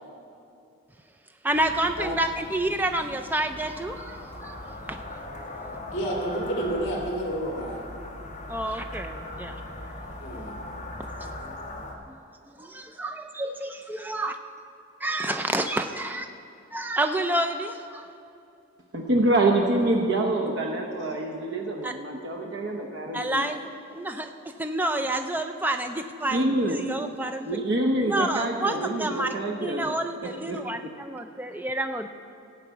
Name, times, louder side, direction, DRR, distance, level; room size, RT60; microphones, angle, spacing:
voice 1, 1.4-4.6 4.9-5.0 8.5-9.6 12.6-14.4 15.0-16.3 16.7-18.1 21.8-21.9 23.1-27.5 28.1-32.1, right 1 dB, 10° right, 6 dB, 0.4 m, -29 dB
sound 1, 1.5-11.9, left 1 dB, 35° left, 1.5 m, -40 dB
voice 2, 5.9-7.8 10.2-10.5, right 1 dB, 55° left, -1 dB, 2.1 m, -30 dB
voice 3, 18.9-23.4 26.3-26.8 27.5-29.9 30.5-30.6, right 2 dB, 55° right, 1 dB, 0.9 m, -26 dB
16.5 x 5.7 x 8.2 m, 2.6 s
head